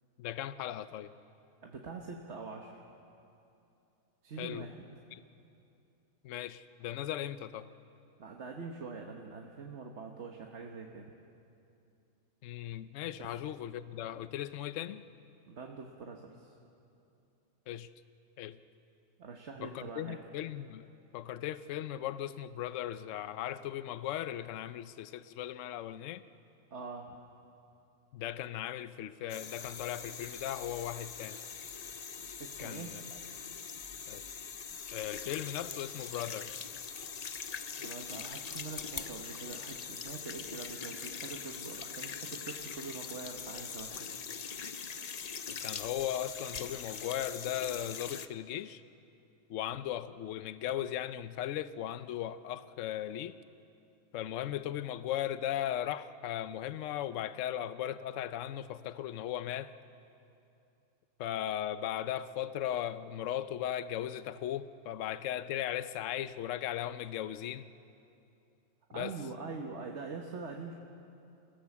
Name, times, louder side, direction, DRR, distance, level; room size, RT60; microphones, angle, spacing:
voice 1, 0.2-1.1 4.4-4.7 5.1-5.2 6.2-7.7 12.4-15.0 17.7-17.9 18.4-18.6 19.6-20.9 21.1-26.2 28.1-31.4 32.6-33.0 34.1-34.2 34.9-36.6 45.5-48.8 49.5-53.3 54.1-59.7 61.2-67.7 68.9-69.1, left 11 dB, 65° left, 14 dB, 1.0 m, -37 dB
voice 2, 1.6-2.8 4.2-4.8 8.2-11.1 13.2-13.3 14.1-14.2 15.5-16.5 19.2-20.2 26.7-27.1 32.4-33.0 37.8-44.1 68.9-70.7, right 4 dB, 55° right, 1 dB, 1.5 m, -44 dB
sound 1, 29.3-48.3, left 6 dB, 45° left, 0.5 m, -42 dB
27.5 x 16.5 x 7.3 m, 2.7 s
omnidirectional pair, 1.5 m